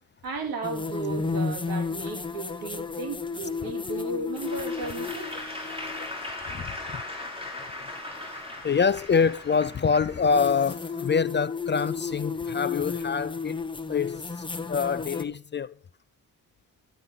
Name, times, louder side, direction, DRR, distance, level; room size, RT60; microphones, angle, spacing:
voice 1, 0.2-5.3, right 3 dB, 75° right, 3.1 m, -35 dB
sound 1, 0.6-6.1 8.2-8.3 10.3-15.2, left 4 dB, 15° left, 1.0 m, -33 dB
Applause / Crowd, 4.3-10.7, left 2 dB, 15° right, 6.1 m, -38 dB
voice 2, 6.5-7.0 8.6-13.6 13.9-14.2 14.7-15.7, left 5 dB, 30° left, 0.4 m, -25 dB
11.5 x 11.0 x 3.8 m
cardioid pair, 120°, 36 cm